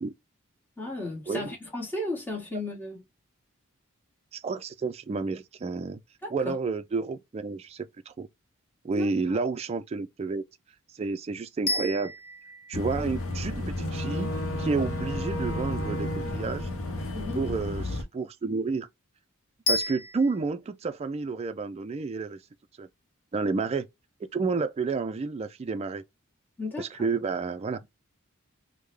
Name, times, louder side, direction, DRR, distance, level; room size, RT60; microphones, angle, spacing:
voice 1, 0.8-3.0 6.2-6.5 8.9-9.1 17.1-17.4 26.6-26.9, left 2 dB, 10° left, 1.2 m, -34 dB
voice 2, 4.3-6.0 6.3-8.3 8.8-10.4 10.9-12.1 12.7-16.7 17.4-18.9 19.7-22.4 22.8-22.9 23.3-23.9 24.3-26.0 26.8-27.8, right 4 dB, 30° right, 0.3 m, -30 dB
sound 1, 11.7-13.8 19.7-20.4, left 2 dB, 45° left, 0.9 m, -32 dB
Boat Water vehicle / Engine, 12.7-18.0, left 1 dB, 80° left, 0.7 m, -32 dB
3.6 x 2.0 x 3.1 m
head